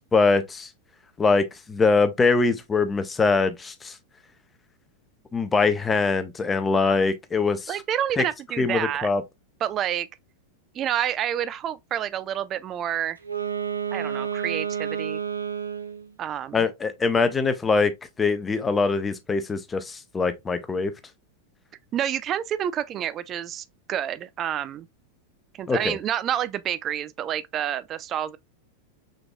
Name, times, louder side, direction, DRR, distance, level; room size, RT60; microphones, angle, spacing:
voice 1, 0.1-0.7 1.2-3.9 5.3-7.8 8.2-8.3 8.6-9.2 16.5-17.9 18.2-20.9 25.7-26.0, left 4 dB, 15° left, 0.7 m, -23 dB
voice 2, 7.7-9.1 9.6-10.1 10.7-13.2 13.9-15.2 16.2-16.7 21.9-24.9 25.6-28.4, right 10 dB, 30° right, 0.4 m, -28 dB
Wind instrument woodwind instrument, 13.2-16.1, right 8 dB, 80° right, 0.7 m, -30 dB
5.2 x 3.9 x 2.3 m
figure-of-eight pair, 90°, 0 cm